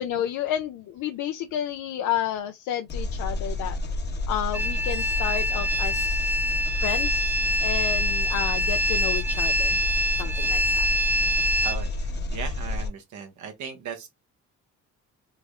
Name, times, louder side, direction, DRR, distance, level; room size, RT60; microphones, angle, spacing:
voice 1, 0.0-3.8 4.3-6.3 6.7-9.8 10.2-10.8, left 10 dB, 80° left, 0.5 m, -31 dB
Engine, 2.9-12.9, left 2 dB, 35° left, 0.9 m, -30 dB
sound 1, 4.5-11.8, equal, 5° right, 0.4 m, -25 dB
voice 2, 11.6-14.1, right 7 dB, 75° right, 0.8 m, -37 dB
3.3 x 2.0 x 3.5 m
cardioid pair, 90°, 30 cm